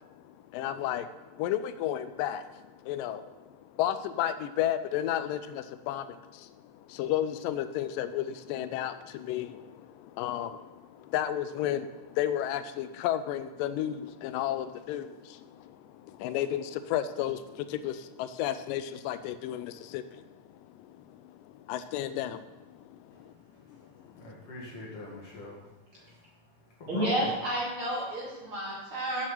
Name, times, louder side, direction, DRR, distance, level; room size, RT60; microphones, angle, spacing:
voice 1, 0.0-23.3 23.7-24.3, left 11 dB, 85° left, 12 dB, 2.2 m, -33 dB
voice 2, 23.1-25.6 25.9-26.2 26.8-27.3, left 1 dB, 45° left, -4 dB, 2.8 m, -43 dB
voice 3, 26.9-29.3, right 1 dB, 40° right, -5 dB, 2.9 m, -31 dB
7.5 x 7.5 x 6.4 m, 1.1 s
omnidirectional pair, 3.8 m